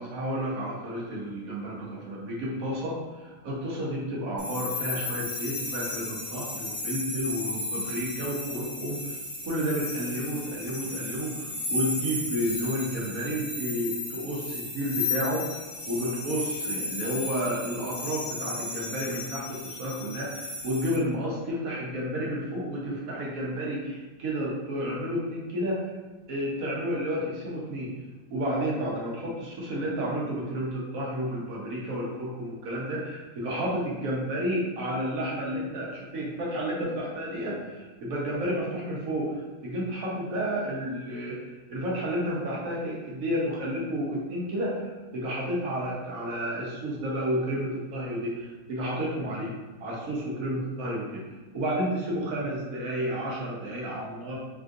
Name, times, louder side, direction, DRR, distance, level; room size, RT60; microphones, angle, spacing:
voice 1, 0.0-9.1 9.4-15.5 15.9-25.8 26.3-27.9 28.3-41.4 41.7-49.5 49.8-51.2 51.5-54.4, equal, 80° right, -4 dB, 1.2 m, -31 dB
sound 1, 4.4-21.0, left 3 dB, 80° left, 1.3 m, -34 dB
3.6 x 2.4 x 2.5 m, 1.2 s
omnidirectional pair, 1.4 m